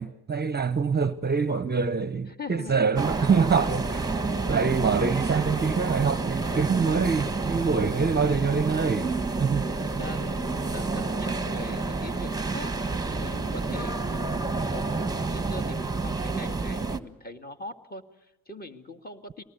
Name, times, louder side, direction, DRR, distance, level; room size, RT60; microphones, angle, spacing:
voice 1, 0.0-9.1 9.4-9.7, right 5 dB, 25° right, 0.9 m, -25 dB
voice 2, 2.3-2.7 9.2-19.4, left 2 dB, 25° left, 2.3 m, -43 dB
sound 1, 3.0-17.0, right 3 dB, 10° right, 1.4 m, -29 dB
23.5 x 19.0 x 8.2 m
cardioid pair, 80°, 40 cm